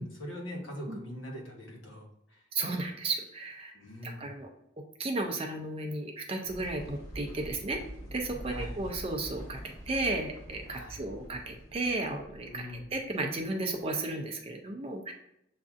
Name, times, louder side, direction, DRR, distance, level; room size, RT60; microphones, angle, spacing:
voice 1, 0.0-2.4 3.7-4.3 8.4-8.8 10.7-11.0 12.4-12.9, equal, 80° left, 0 dB, 1.2 m, -42 dB
voice 2, 2.5-3.7 4.0-4.5 5.0-7.8 8.1-12.7 12.9-15.1, right 2 dB, 30° right, 3 dB, 0.4 m, -34 dB
sound 1, 6.4-13.8, right 1 dB, 20° left, 1.0 m, -45 dB
7.3 x 2.5 x 2.4 m, 0.78 s
head